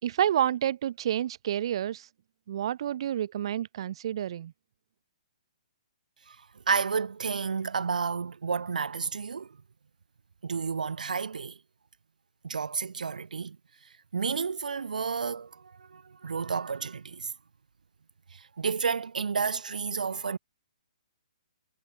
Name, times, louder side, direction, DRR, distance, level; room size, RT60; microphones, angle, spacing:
voice 1, 0.0-2.1 2.5-4.5, right 11 dB, 40° right, 4.6 m, -29 dB
voice 2, 6.3-9.6 10.4-11.6 12.4-13.6 14.1-17.3 18.3-20.4, right 5 dB, 90° right, 5.1 m, -31 dB
hypercardioid pair, 170°, 4 cm